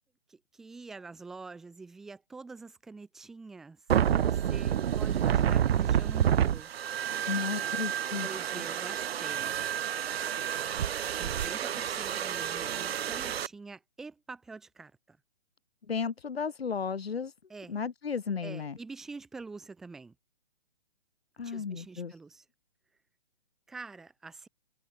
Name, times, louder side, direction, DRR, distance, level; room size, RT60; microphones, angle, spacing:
voice 1, 0.3-3.8 4.1-6.7 8.2-9.6 11.2-15.2 17.5-17.7 18.4-20.1 21.4-22.4 23.7-24.5, right 4 dB, ahead, 1.0 m, -46 dB
sound 1, 3.9-13.5, right 9 dB, 85° right, 0.6 m, -29 dB
voice 2, 7.3-8.3 8.5-8.6 15.9-17.3 17.7-18.8 21.4-22.1, left 6 dB, 80° left, 3.0 m, -34 dB
hypercardioid pair, 180°, 30 cm